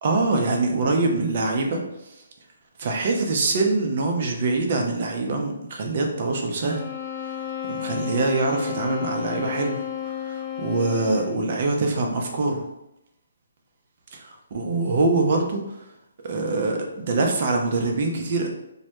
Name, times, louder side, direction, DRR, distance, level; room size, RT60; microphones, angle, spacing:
voice 1, 0.0-1.8 2.8-6.8 7.7-12.6 14.5-15.6 16.2-18.5, right 3 dB, 50° right, 2 dB, 0.5 m, -24 dB
sound 1, 6.6-11.5, left 9 dB, ahead, 0.6 m, -32 dB
2.1 x 2.0 x 2.8 m, 0.86 s
hypercardioid pair, 145°, 0 cm